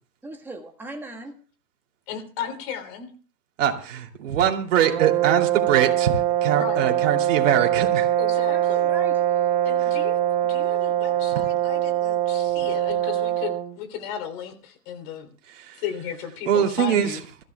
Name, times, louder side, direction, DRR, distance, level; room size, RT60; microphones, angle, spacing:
voice 1, 0.2-1.3 8.5-9.5, right 2 dB, 5° right, 2 dB, 1.5 m, -38 dB
voice 2, 2.1-3.1 6.6-6.8 8.2-8.9 9.6-10.2 10.5-15.3 15.8-17.2, left 8 dB, 35° left, 7 dB, 3.3 m, -35 dB
voice 3, 3.6-8.1 15.6-15.8 16.5-17.2, right 9 dB, 50° right, 3 dB, 2.9 m, -23 dB
sound 1, 4.8-13.7, right 12 dB, 30° right, 1.3 m, -23 dB
26.0 x 14.5 x 2.3 m, 0.39 s
hypercardioid pair, 140°, 46 cm